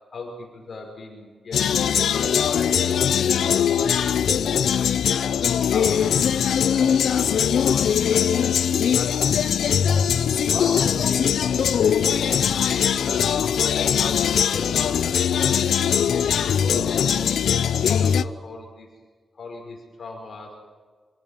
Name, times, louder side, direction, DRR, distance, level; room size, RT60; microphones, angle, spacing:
voice 1, 0.1-1.7 1.9-3.0 3.4-8.6 8.9-9.3 10.5-18.9 19.3-20.6, left 3 dB, 45° left, 0 dB, 5.7 m, -38 dB
sound 1, 1.5-18.2, left 8 dB, 90° left, 0.7 m, -21 dB
27.0 x 16.5 x 9.2 m, 1.5 s
wide cardioid pair, 150°, 0 cm